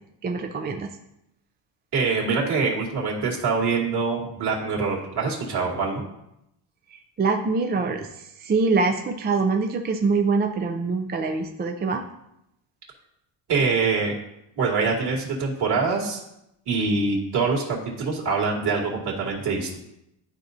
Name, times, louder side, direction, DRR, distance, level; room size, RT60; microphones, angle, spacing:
voice 1, 0.2-0.9 6.9-8.1 8.4-12.0, right 4 dB, 20° right, 4 dB, 0.4 m, -24 dB
voice 2, 1.9-6.0 13.5-14.1 14.6-16.2 16.7-17.6 18.0-19.8, right 4 dB, 50° right, -2 dB, 2.4 m, -24 dB
12.0 x 4.7 x 2.7 m, 0.82 s
cardioid pair, 130°, 50 cm